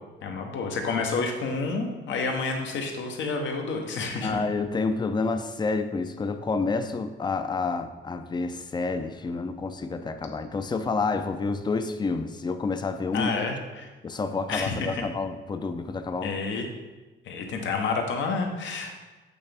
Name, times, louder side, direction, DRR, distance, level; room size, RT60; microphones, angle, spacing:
voice 1, 0.2-4.4 13.1-13.9 14.5-15.0 16.2-16.7 17.2-19.0, left 4 dB, 70° left, 3 dB, 1.0 m, -29 dB
voice 2, 4.2-13.3 14.0-16.3, left 4 dB, 20° left, 8 dB, 0.4 m, -29 dB
8.4 x 3.4 x 3.4 m, 1.2 s
cardioid pair, 90°, 20 cm